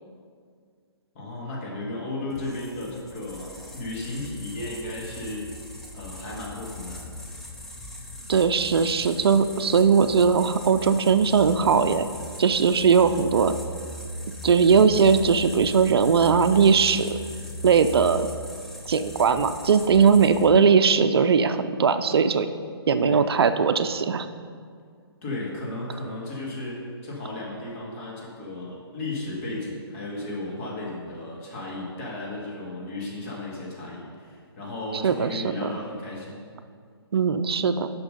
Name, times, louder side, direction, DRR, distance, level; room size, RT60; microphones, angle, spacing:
voice 1, 1.1-5.5 5.9-7.0 23.0-23.3 25.2-36.5, left 2 dB, 30° left, -4 dB, 2.0 m, -34 dB
sound 1, 2.3-20.7, left 1 dB, ahead, 0.6 m, -39 dB
voice 2, 8.3-12.1 12.4-13.5 14.4-17.2 17.6-18.3 18.9-22.5 22.9-24.3 35.0-35.7 37.1-37.9, right 6 dB, 70° right, 10 dB, 0.5 m, -19 dB
7.0 x 5.8 x 5.3 m, 2.1 s
hypercardioid pair, 150°, 14 cm